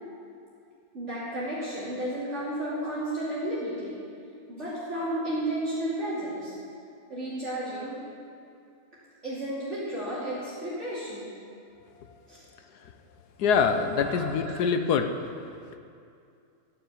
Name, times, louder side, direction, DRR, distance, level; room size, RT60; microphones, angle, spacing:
voice 1, 0.9-4.0 4.5-6.5 7.1-8.0 9.2-11.3 12.3-12.4 14.0-14.7, right 1 dB, 45° right, -10 dB, 3.0 m, -32 dB
voice 2, 13.4-15.1, left 6 dB, 90° left, 7 dB, 1.4 m, -24 dB
12.5 x 7.1 x 8.0 m, 2.5 s
omnidirectional pair, 1.7 m